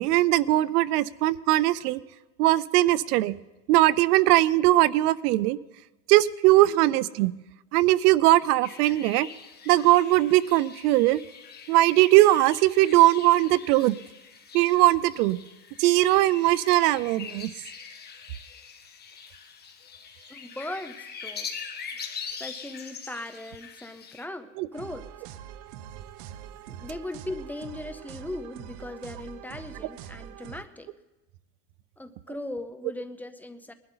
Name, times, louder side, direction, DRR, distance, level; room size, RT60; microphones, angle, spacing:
voice 1, 0.0-2.0 2.4-3.3 3.7-5.6 6.1-7.3 7.7-9.3 9.7-11.2 11.7-13.9 14.5-15.4 15.8-17.5 24.6-24.7, right 16 dB, 80° right, 20 dB, 0.7 m, -20 dB
sound 1, 8.6-24.3, left 6 dB, 20° left, 1.5 m, -43 dB
voice 2, 20.3-21.5 22.0-22.1 22.4-25.1 26.7-30.9 32.0-33.7, left 1 dB, 5° left, 9 dB, 0.6 m, -38 dB
sound 2, 24.7-30.6, right 10 dB, 65° right, 1.0 m, -44 dB
21.0 x 12.0 x 3.9 m, 1.1 s
supercardioid pair, 135°, 46 cm